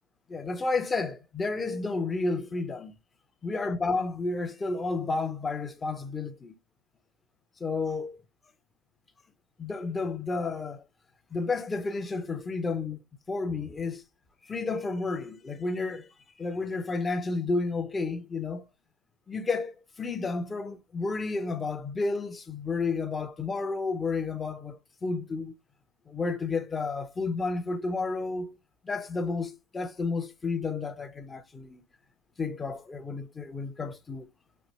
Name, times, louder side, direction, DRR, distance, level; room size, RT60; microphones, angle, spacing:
voice 1, 0.3-3.0 3.4-6.5 7.6-8.2 9.6-10.8 11.3-13.0 13.3-14.0 14.5-16.1 16.4-18.7 19.3-25.5 26.1-28.6 28.8-31.8 32.4-34.3, left 3 dB, 15° left, 0.4 m, -31 dB
4.1 x 2.6 x 3.0 m
supercardioid pair, 140°, 0 cm